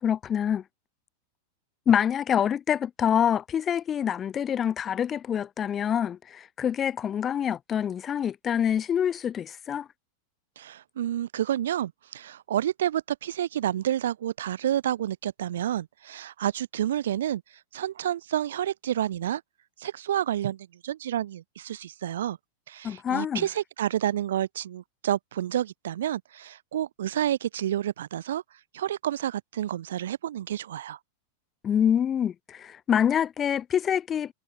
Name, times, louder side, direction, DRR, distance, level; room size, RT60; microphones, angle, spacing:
voice 1, 0.0-0.6 1.9-9.9 22.8-23.4 31.6-34.3, left 9 dB, 25° left, 4.5 m, -26 dB
voice 2, 10.6-17.4 17.7-19.4 19.8-22.4 22.7-28.4 28.7-31.0, right 11 dB, 60° right, 2.0 m, -29 dB
figure-of-eight pair, 90°, 0 cm